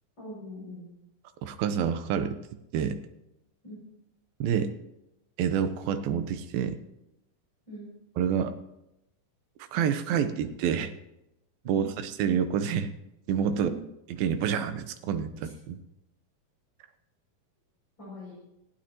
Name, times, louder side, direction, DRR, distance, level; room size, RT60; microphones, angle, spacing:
voice 1, 0.2-0.9 3.6-3.8 7.7-7.9 11.6-11.9 13.5-13.8 15.4-15.5 18.0-18.3, right 1 dB, 30° left, -7 dB, 7.3 m, -42 dB
voice 2, 1.4-2.4 2.7-3.0 4.4-4.7 5.4-6.8 8.2-8.6 9.7-10.9 11.7-12.9 13.3-13.7 14.2-15.8, right 8 dB, 80° right, 10 dB, 2.6 m, -28 dB
20.0 x 15.0 x 3.0 m, 0.87 s
omnidirectional pair, 4.2 m